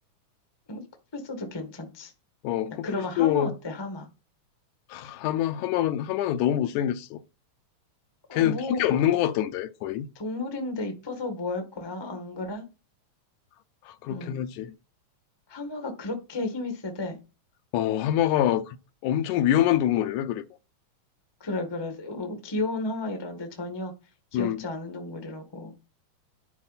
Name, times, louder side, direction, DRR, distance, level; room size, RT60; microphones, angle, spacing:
voice 1, 1.1-2.1 2.8-4.1 8.3-8.8 10.1-12.6 14.1-14.4 15.5-17.2 21.4-23.9 24.3-25.7, left 2 dB, 35° left, 0.4 m, -33 dB
voice 2, 2.4-3.5 4.9-7.2 8.3-10.1 13.9-14.7 17.7-18.8 19.0-20.4 24.3-24.6, left 11 dB, 80° left, 1.9 m, -25 dB
11.0 x 4.4 x 4.1 m
omnidirectional pair, 3.6 m